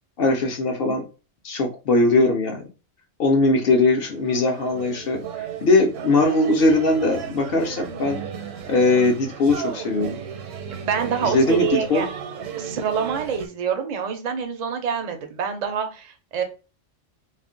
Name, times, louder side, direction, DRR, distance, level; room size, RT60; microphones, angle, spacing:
voice 1, 0.2-1.0 1.4-2.7 3.2-8.2 8.7-10.2 11.2-12.0, left 2 dB, 60° left, 3 dB, 0.6 m, -20 dB
sound 1, 3.8-13.5, right 7 dB, 80° right, 1.0 m, -34 dB
voice 2, 10.7-12.1 12.5-16.4, right 7 dB, 55° right, 5 dB, 0.4 m, -26 dB
2.4 x 2.1 x 3.6 m, 0.33 s
omnidirectional pair, 1.3 m